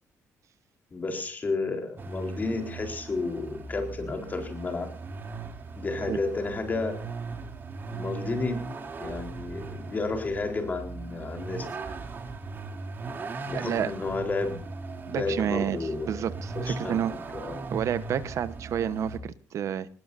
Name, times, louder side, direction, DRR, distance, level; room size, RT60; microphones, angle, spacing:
voice 1, 0.9-4.9 5.7-7.0 7.9-8.6 9.0-11.7 13.5-14.6 15.1-16.2 16.5-17.2 17.4-17.6, left 3 dB, 30° left, 4 dB, 4.2 m, -31 dB
Vehicle, 2.0-19.2, right 3 dB, 35° right, 3.0 m, -38 dB
voice 2, 13.5-13.9 15.1-15.8 16.1-17.1 17.7-19.9, right 9 dB, 65° right, 13 dB, 1.1 m, -29 dB
25.0 x 20.0 x 2.7 m, 0.38 s
cardioid pair, 130°, 6 cm